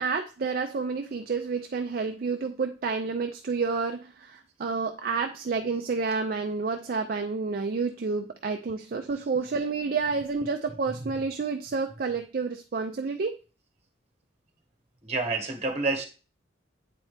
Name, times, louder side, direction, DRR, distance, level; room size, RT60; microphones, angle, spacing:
voice 1, 0.0-13.4, right 4 dB, 50° right, 5 dB, 0.4 m, -29 dB
voice 2, 15.0-16.0, right 3 dB, 35° right, 3 dB, 1.3 m, -28 dB
8.4 x 4.2 x 3.3 m, 0.35 s
head